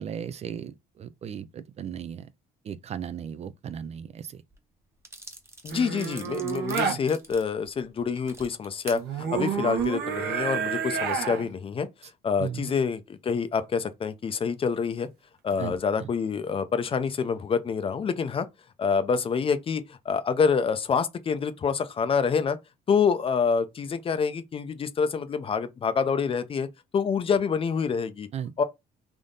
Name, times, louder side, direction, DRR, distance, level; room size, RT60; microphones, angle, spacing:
voice 1, 0.0-2.2 2.7-4.4 12.4-12.7 15.6-15.7 16.0-16.1 28.3-28.5, right 8 dB, 40° right, 0.4 m, -36 dB
sound 1, 4.5-4.6 5.0-9.0 9.6-9.9, right 2 dB, 15° right, 0.8 m, -44 dB
voice 2, 5.6-11.9 12.2-15.1 15.4-18.5 18.8-22.6 22.9-26.7 26.9-28.3 28.6-28.7, left 6 dB, 35° left, 0.5 m, -27 dB
sound 2, 5.7-7.0 8.9-11.5 15.5-15.8, right 6 dB, 70° right, 0.9 m, -29 dB
3.5 x 2.6 x 3.8 m
cardioid pair, 110°, 17 cm